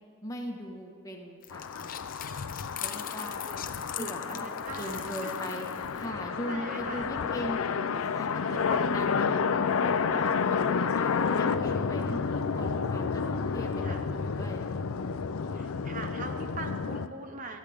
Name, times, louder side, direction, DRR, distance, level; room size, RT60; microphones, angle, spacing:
voice 1, 0.2-2.0 2.8-3.4 4.0-4.5 4.8-5.7 5.9-7.6 7.9-14.8 15.4-15.7, left 1 dB, 15° left, 1 dB, 1.3 m, -39 dB
sound 1, 1.4-6.1, left 11 dB, 40° left, 0.6 m, -41 dB
sound 2, 1.5-17.1, left 5 dB, 85° left, 0.5 m, -30 dB
voice 2, 3.4-5.6 6.0-6.1 6.4-7.1 8.6-8.9 11.1-12.0 13.8-14.0 15.5-17.6, right 3 dB, 40° right, 5 dB, 0.8 m, -43 dB
18.5 x 13.5 x 3.6 m, 2.5 s
head